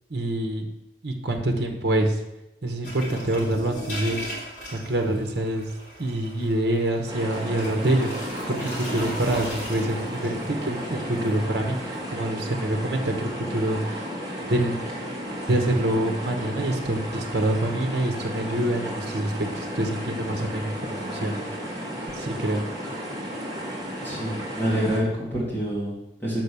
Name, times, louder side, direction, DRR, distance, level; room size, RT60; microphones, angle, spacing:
voice 1, 0.1-0.7 1.0-2.2 2.6-4.2 4.7-5.7 6.0-8.1 8.5-11.8 12.1-14.0 14.5-14.8 15.5-21.4 22.1-22.6, right 1 dB, 65° right, 4 dB, 1.1 m, -26 dB
sound 1, 2.8-12.1, equal, 40° left, 3.6 m, -38 dB
sound 2, 7.1-25.0, equal, 20° right, 1.7 m, -33 dB
voice 2, 24.0-26.4, equal, 10° left, -6 dB, 2.4 m, -27 dB
6.2 x 5.6 x 6.9 m, 0.94 s
head